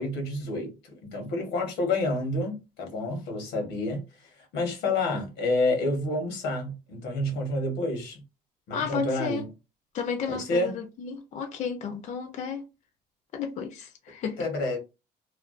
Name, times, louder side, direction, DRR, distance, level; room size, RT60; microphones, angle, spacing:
voice 1, 0.0-4.0 4.5-8.2 8.7-9.5 10.3-10.7 14.4-14.8, left 2 dB, 85° left, 0.9 m, -29 dB
voice 2, 8.7-9.5 9.9-12.6 13.3-14.4, left 6 dB, 45° left, 0.4 m, -32 dB
2.4 x 2.2 x 2.3 m
cardioid pair, 110°, 17 cm